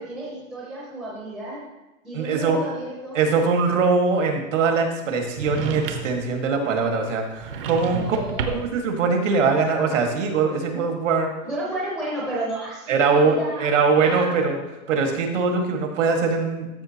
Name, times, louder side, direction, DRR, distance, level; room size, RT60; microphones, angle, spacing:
voice 1, 0.0-1.6 2.0-3.2 7.9-8.6 11.4-13.6 13.9-14.4, right 1 dB, ahead, -7 dB, 0.6 m, -32 dB
voice 2, 2.1-2.6 3.1-8.2 8.5-11.3 12.9-14.6 14.9-16.8, right 4 dB, 65° right, 3 dB, 1.8 m, -22 dB
sound 1, 5.3-6.3 7.4-8.8, right 5 dB, 45° right, 0.8 m, -30 dB
13.0 x 5.6 x 2.9 m, 1.0 s
hypercardioid pair, 170°, 40 cm